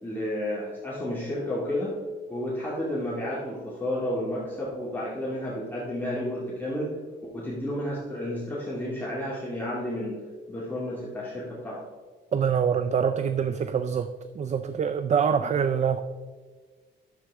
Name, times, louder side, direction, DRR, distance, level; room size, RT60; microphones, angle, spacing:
voice 1, 0.0-1.9 2.3-6.9 7.3-10.2 10.5-11.8 15.4-15.5, left 1 dB, 10° left, -7 dB, 2.2 m, -31 dB
voice 2, 12.3-14.1 14.4-16.0, right 7 dB, 35° right, 11 dB, 0.4 m, -25 dB
10.5 x 7.4 x 3.6 m, 1.5 s
cardioid pair, 90°, 20 cm